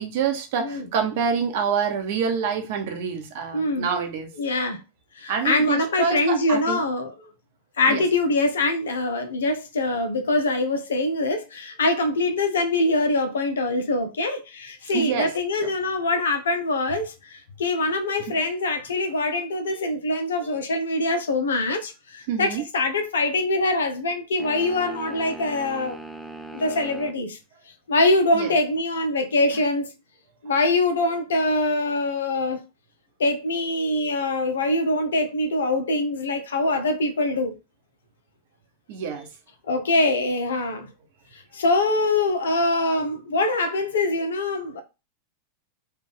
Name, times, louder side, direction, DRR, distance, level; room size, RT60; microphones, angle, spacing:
voice 1, 0.0-4.3 5.3-6.8 7.9-8.0 14.9-15.3 19.7-19.8 20.4-20.5 22.3-22.6 28.3-28.5 38.9-39.3, right 6 dB, 50° right, 0.8 m, -26 dB
voice 2, 3.5-3.9 4.4-4.8 5.2-7.1 7.8-26.0 26.5-27.4 27.9-29.9 30.4-32.6 33.2-37.5 39.7-40.9 41.5-44.8, left 2 dB, 65° left, 0.7 m, -24 dB
sound 1, 24.4-27.2, right 2 dB, ahead, 0.5 m, -39 dB
3.3 x 2.4 x 3.6 m
figure-of-eight pair, 90°, 0 cm